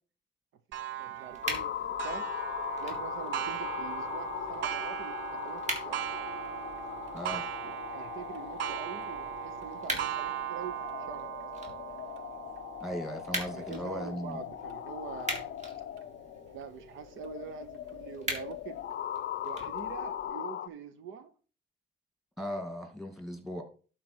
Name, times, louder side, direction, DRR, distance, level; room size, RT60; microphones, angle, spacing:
Clock, 0.7-16.0 16.6-16.7 17.2-17.3 18.3-18.4, right 12 dB, 70° right, 0.5 m, -39 dB
voice 1, 1.0-2.3 2.8-6.0 7.9-11.3 13.5-15.6 16.5-18.8 19.4-21.3, right 7 dB, 85° right, 0.9 m, -44 dB
sound 1, 1.3-20.3, right 1 dB, 35° right, 3.1 m, -43 dB
sound 2, 1.4-20.7, left 10 dB, 60° left, 0.6 m, -40 dB
voice 2, 7.1-7.5 12.8-14.4 22.4-23.6, equal, ahead, 2.3 m, -37 dB
11.5 x 4.5 x 4.5 m
cardioid pair, 90°, 20 cm